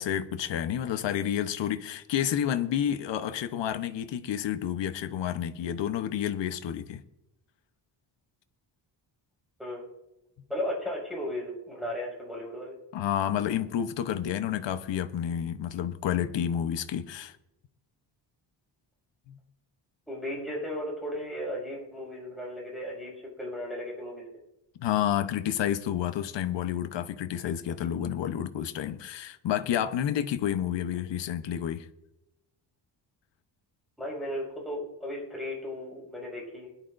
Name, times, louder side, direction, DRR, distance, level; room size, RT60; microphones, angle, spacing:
voice 1, 0.0-7.0 12.9-17.3 19.3-19.4 24.8-31.9, left 10 dB, 75° left, 1.0 m, -30 dB
voice 2, 9.6-9.9 10.5-12.7 20.1-24.3 34.0-36.7, left 1 dB, ahead, 5.8 m, -35 dB
21.5 x 11.0 x 2.6 m
wide cardioid pair, 155°, 44 cm